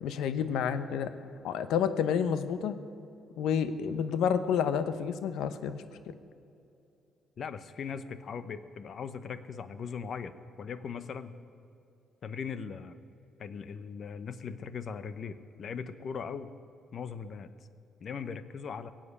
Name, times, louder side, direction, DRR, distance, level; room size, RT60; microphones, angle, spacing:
voice 1, 0.0-1.1 1.4-2.7 3.4-5.8, left 7 dB, 85° left, 12 dB, 0.8 m, -29 dB
voice 2, 7.4-11.3 12.2-13.0 13.4-16.5 16.9-17.5 18.0-18.9, left 6 dB, 55° left, 12 dB, 0.8 m, -39 dB
18.0 x 7.7 x 8.3 m, 2.6 s
cardioid pair, 90°, 0 cm